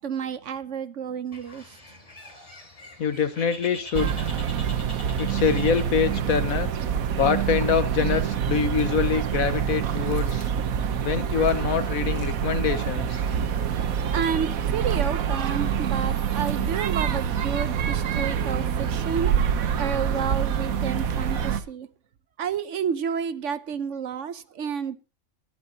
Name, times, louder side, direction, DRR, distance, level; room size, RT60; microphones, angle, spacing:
voice 1, 0.0-1.8 14.1-19.3 19.8-21.9 22.4-25.0, right 7 dB, 65° right, 1.1 m, -30 dB
Bird, 1.3-6.4, left 1 dB, 25° left, 2.7 m, -44 dB
voice 2, 3.0-4.3 5.2-6.7 7.2-10.4 11.0-13.2, left 6 dB, 85° left, 1.6 m, -25 dB
sound 1, 3.9-21.6, right 8 dB, 85° right, 1.4 m, -26 dB
20.5 x 12.0 x 2.9 m
omnidirectional pair, 1.4 m